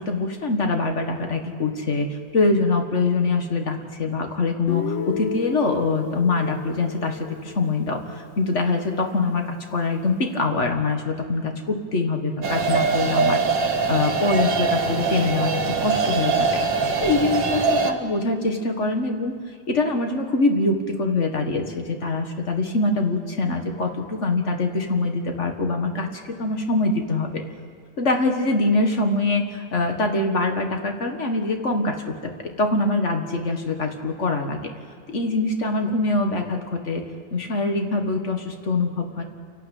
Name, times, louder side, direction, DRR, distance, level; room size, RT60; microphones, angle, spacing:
voice 1, 0.1-13.4 13.9-16.6 17.0-19.4 19.7-27.4 28.0-32.0 32.2-32.3 32.6-34.7 35.1-37.0 37.3-39.2, left 3 dB, 40° left, 4 dB, 2.0 m, -24 dB
Guitar, 4.7-8.6, left 10 dB, 90° left, 1.5 m, -33 dB
sound 1, 12.4-17.9, right 4 dB, 80° right, 2.2 m, -22 dB
29.0 x 12.0 x 8.5 m, 2.1 s
omnidirectional pair, 2.0 m